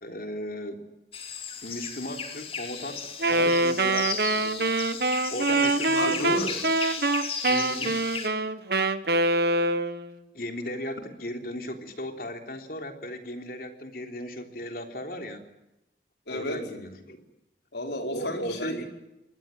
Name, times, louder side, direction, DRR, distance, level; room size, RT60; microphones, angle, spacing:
voice 1, 0.0-0.8 1.6-4.1 4.3-4.8 5.3-6.5 10.3-15.5 16.3-17.2 18.1-18.8, left 1 dB, 55° left, 5 dB, 3.4 m, -36 dB
sound 1, 1.1-8.3, left 5 dB, 30° left, 2.9 m, -35 dB
Wind instrument woodwind instrument, 3.2-10.2, right 2 dB, 60° right, 1.3 m, -25 dB
voice 2, 6.0-6.6 7.4-8.0 16.3-16.6 17.7-18.9, equal, 75° left, 3 dB, 5.2 m, -32 dB
25.0 x 20.0 x 9.2 m, 0.93 s
head